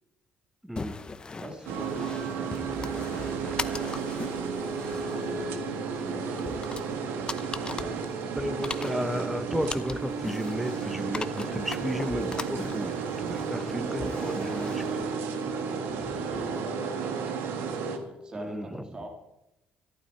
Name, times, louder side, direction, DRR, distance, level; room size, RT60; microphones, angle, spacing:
voice 1, 0.6-1.0 8.4-14.7 18.3-18.8, equal, 5° right, 11 dB, 0.9 m, -33 dB
sound 1, 0.8-16.6, left 4 dB, 25° left, 0.7 m, -41 dB
voice 2, 1.3-3.9 4.2-6.6 7.5-8.6 13.5-19.1, right 1 dB, 25° right, 2 dB, 2.2 m, -43 dB
sound 2, 1.7-18.0, right 5 dB, 90° right, 1.6 m, -33 dB
14.5 x 12.0 x 4.5 m, 0.92 s
cardioid pair, 120°, 4 cm